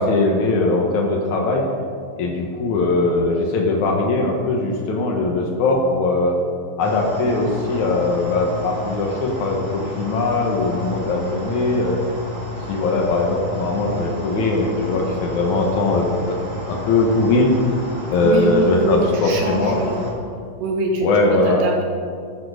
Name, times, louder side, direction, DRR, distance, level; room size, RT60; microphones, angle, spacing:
voice 1, 0.0-1.7 2.2-6.3 6.8-12.0 12.7-16.4 16.7-17.5 18.1-19.8 21.0-21.6, left 3 dB, 80° left, 0 dB, 1.6 m, -20 dB
sound 1, 6.8-20.1, left 1 dB, 40° right, 2.0 m, -32 dB
voice 2, 18.2-20.0 20.6-21.1 21.4-21.9, right 2 dB, 65° right, -1 dB, 3.6 m, -23 dB
14.5 x 12.5 x 5.1 m, 2.3 s
omnidirectional pair, 5.8 m